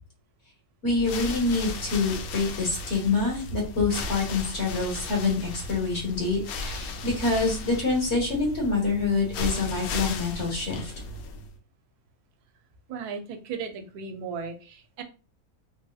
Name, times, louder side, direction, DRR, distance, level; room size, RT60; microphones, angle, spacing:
voice 1, 0.8-10.9, left 3 dB, 50° left, -1 dB, 1.4 m, -26 dB
sound 1, 0.9-11.5, left 2 dB, 75° left, 1.0 m, -36 dB
voice 2, 12.9-15.0, right 6 dB, 90° right, 6 dB, 1.1 m, -36 dB
3.4 x 2.7 x 2.3 m, 0.35 s
omnidirectional pair, 1.6 m